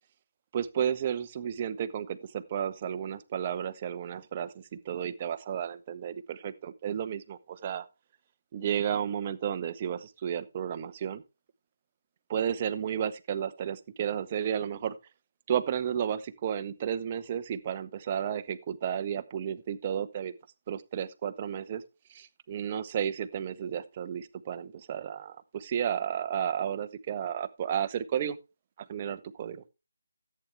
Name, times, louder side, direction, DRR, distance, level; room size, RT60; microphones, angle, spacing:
voice 1, 0.5-7.9 8.5-11.2 12.3-15.0 15.5-20.3 20.7-21.8 22.1-28.4 28.8-29.6, right 9 dB, 30° right, 11 dB, 0.9 m, -32 dB
14.5 x 8.7 x 3.4 m, 0.29 s
figure-of-eight pair, 150°, 0 cm